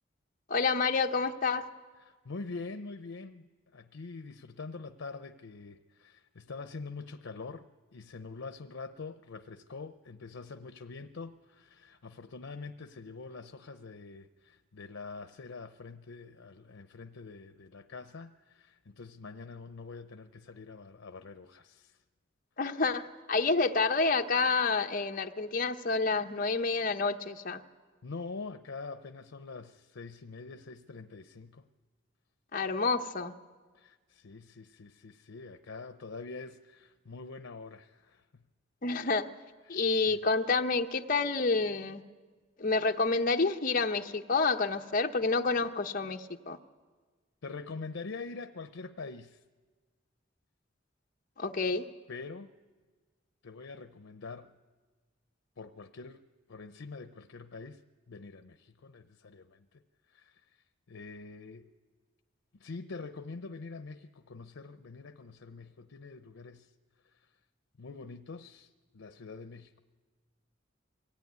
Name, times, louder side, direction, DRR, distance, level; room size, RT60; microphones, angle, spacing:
voice 1, 0.5-1.7 22.6-27.6 32.5-33.3 38.8-39.3 39.7-42.0 42.6-46.6 51.4-51.9, left 4 dB, 45° left, 0.9 m, -29 dB
voice 2, 2.1-22.0 28.0-31.7 33.7-38.4 39.7-39.8 40.1-40.2 47.4-49.4 52.1-52.5 53.4-54.6 55.6-56.2 56.5-61.7 62.5-66.7 67.0-67.3 67.8-69.8, left 4 dB, 85° left, 0.6 m, -45 dB
23.0 x 16.5 x 9.4 m
head